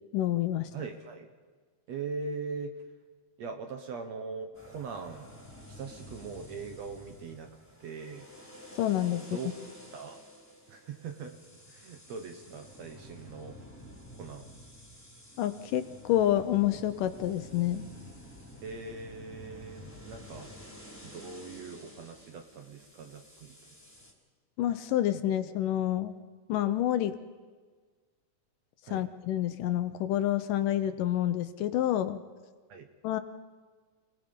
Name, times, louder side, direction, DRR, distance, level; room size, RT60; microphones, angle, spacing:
voice 1, 0.1-0.7 8.7-9.2 15.4-17.9 24.6-26.2 26.5-27.1 28.9-32.2 33.0-33.2, left 12 dB, 75° left, 11 dB, 2.2 m, -28 dB
voice 2, 0.7-1.3 1.9-2.8 3.4-5.3 5.7-7.5 7.8-8.3 9.3-10.2 10.7-11.4 11.7-13.6 14.1-14.5 18.6-20.5 21.0-23.5 28.8-29.0 32.7-32.9, right 4 dB, 60° right, 5 dB, 2.0 m, -41 dB
sound 1, 4.5-24.1, left 1 dB, 5° left, 2.9 m, -50 dB
29.0 x 19.0 x 5.3 m, 1.5 s
omnidirectional pair, 4.1 m